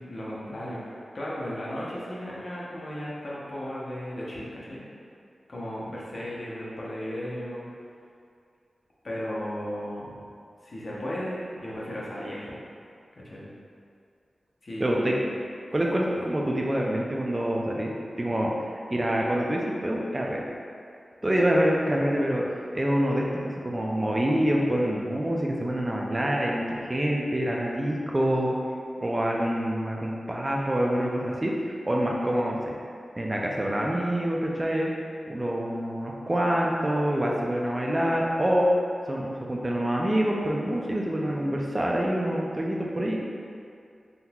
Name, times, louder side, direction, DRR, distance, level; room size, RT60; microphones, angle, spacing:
voice 1, 0.0-4.8 5.5-7.7 9.0-10.2 10.6-12.5 13.2-13.5 14.6-15.2, equal, 50° left, -6 dB, 0.7 m, -35 dB
voice 2, 14.8-15.1 15.7-17.9 18.2-20.4 21.2-28.5 29.0-32.8 33.2-34.9 35.3-38.7 39.1-43.2, equal, 25° right, -2 dB, 0.3 m, -26 dB
3.7 x 2.7 x 2.3 m, 2.4 s
wide cardioid pair, 80°, 0 cm